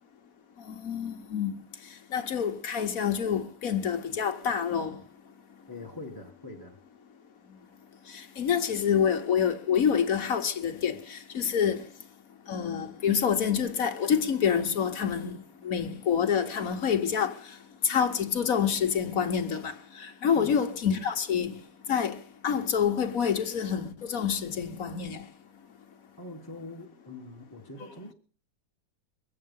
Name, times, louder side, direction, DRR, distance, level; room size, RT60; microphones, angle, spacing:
voice 1, 0.7-1.6 2.1-5.0 8.1-11.8 12.5-17.4 17.8-21.6 21.9-25.2, left 7 dB, 55° left, 1.4 m, -27 dB
voice 2, 5.7-6.8 20.3-20.5 26.2-28.1, left 2 dB, 15° left, 1.5 m, -43 dB
23.0 x 8.5 x 5.3 m
omnidirectional pair, 1.9 m